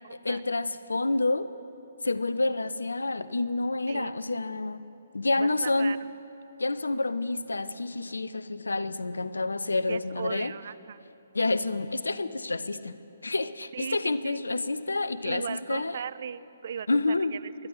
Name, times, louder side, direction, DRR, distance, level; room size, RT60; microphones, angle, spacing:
voice 1, 0.2-1.5 2.0-4.8 5.1-6.0 6.6-10.5 11.3-13.0 13.2-16.0 16.9-17.3, left 2 dB, 70° left, 14 dB, 0.5 m, -28 dB
voice 2, 5.4-6.0 9.9-11.0 13.7-14.0 14.2-14.4 15.2-17.4, right 8 dB, 45° right, 18 dB, 0.3 m, -37 dB
20.0 x 12.0 x 4.0 m, 2.7 s
figure-of-eight pair, 135°, 0 cm